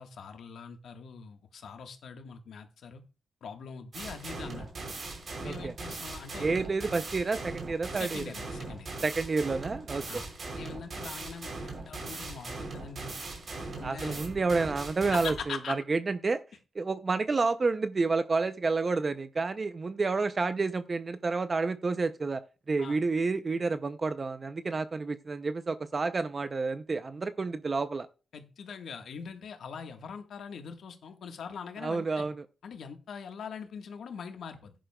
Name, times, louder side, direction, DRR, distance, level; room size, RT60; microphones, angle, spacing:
voice 1, 0.0-3.0 3.4-4.7 5.4-6.6 7.9-8.9 10.1-10.3 10.6-13.1 13.5-14.2 15.1-15.8 22.8-23.0 28.3-32.3 32.6-34.7, left 6 dB, 80° left, 1.4 m, -42 dB
sound 1, 3.9-15.5, right 3 dB, 55° right, 3.1 m, -40 dB
voice 2, 5.4-5.7 6.4-8.2 9.0-10.2 13.8-16.4 16.7-28.1 31.8-32.4, right 4 dB, 35° right, 0.5 m, -30 dB
16.0 x 10.0 x 2.2 m
cardioid pair, 105°, 0 cm